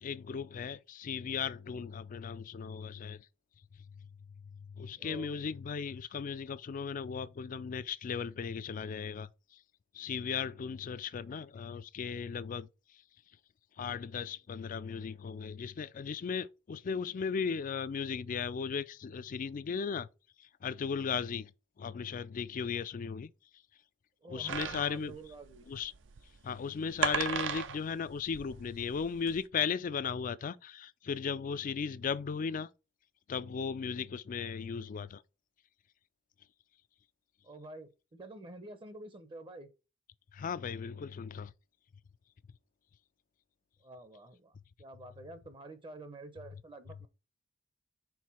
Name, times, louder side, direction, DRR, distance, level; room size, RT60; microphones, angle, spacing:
voice 1, 0.0-3.3 3.7-4.1 4.4-9.6 9.9-13.0 13.8-20.1 20.4-21.5 21.8-23.3 24.3-25.2 25.7-25.9 26.4-32.7 33.3-35.2 40.3-41.5, left 6 dB, 45° left, 0.3 m, -36 dB
voice 2, 5.0-5.3 24.2-25.7 37.4-39.7 43.8-47.1, right 2 dB, 25° right, 0.6 m, -48 dB
sound 1, 24.5-29.4, right 6 dB, 70° right, 0.5 m, -36 dB
4.7 x 3.7 x 5.5 m
head